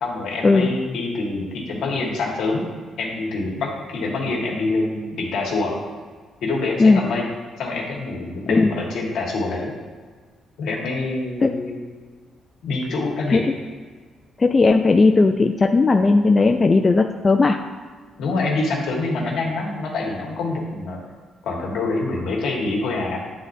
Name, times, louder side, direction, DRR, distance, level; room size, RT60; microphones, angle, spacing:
voice 1, 0.0-2.6 3.0-5.7 6.4-7.2 7.6-9.7 10.6-11.8 12.6-13.4 18.2-21.0 21.4-23.2, left 3 dB, 75° left, -2 dB, 1.5 m, -25 dB
voice 2, 14.4-17.6, left 3 dB, 30° left, 5 dB, 0.3 m, -16 dB
9.4 x 3.8 x 2.6 m, 1.5 s
cardioid pair, 90°, 0 cm